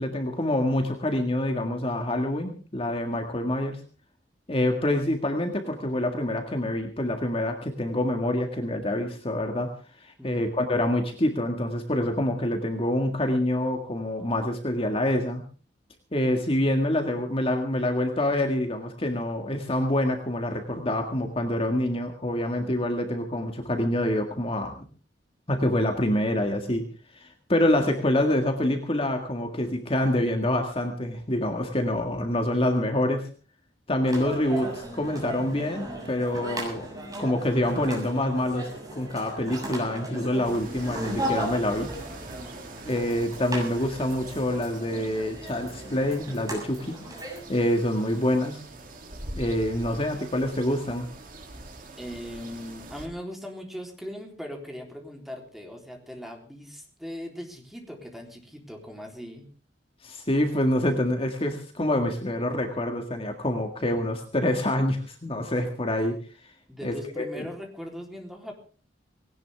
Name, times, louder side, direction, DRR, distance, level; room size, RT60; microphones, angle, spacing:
voice 1, 0.0-3.8 4.5-9.7 10.0-15.4 16.1-24.8 25.5-26.8 27.1-33.3 33.9-36.9 37.2-38.7 39.0-41.9 42.8-47.0 47.5-48.6 49.4-51.1 60.0-66.2 66.8-67.5, left 1 dB, 30° left, 4 dB, 1.9 m, -26 dB
sound 1, 34.1-47.4, right 1 dB, 20° right, 6.9 m, -36 dB
sound 2, 40.4-53.1, right 2 dB, 50° right, 2.9 m, -43 dB
voice 2, 52.0-59.5 66.7-68.5, equal, ahead, 1 dB, 3.7 m, -39 dB
19.5 x 18.0 x 3.6 m, 0.39 s
head